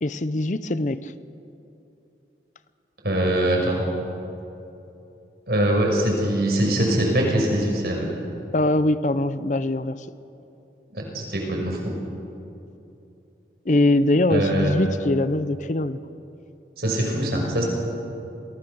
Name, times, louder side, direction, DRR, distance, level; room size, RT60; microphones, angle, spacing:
voice 1, 0.0-1.1 8.5-10.1 13.7-16.0, left 1 dB, 45° left, 14 dB, 0.6 m, -22 dB
voice 2, 3.0-3.8 5.5-8.1 10.9-11.9 14.3-14.7 16.8-17.6, right 1 dB, 65° right, -1 dB, 6.3 m, -22 dB
27.5 x 19.0 x 7.1 m, 2.8 s
head